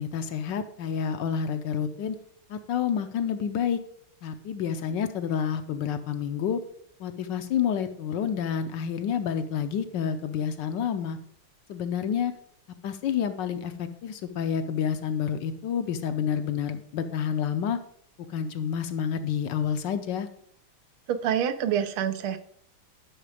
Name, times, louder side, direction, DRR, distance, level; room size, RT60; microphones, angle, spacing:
voice 1, 0.0-2.2 2.5-3.8 4.2-6.6 7.0-11.2 11.7-12.3 12.8-17.8 18.3-20.3, left 8 dB, 70° left, 9 dB, 1.2 m, -29 dB
voice 2, 21.1-22.4, right 9 dB, 90° right, 10 dB, 1.7 m, -26 dB
11.0 x 5.9 x 4.9 m, 0.64 s
omnidirectional pair, 2.3 m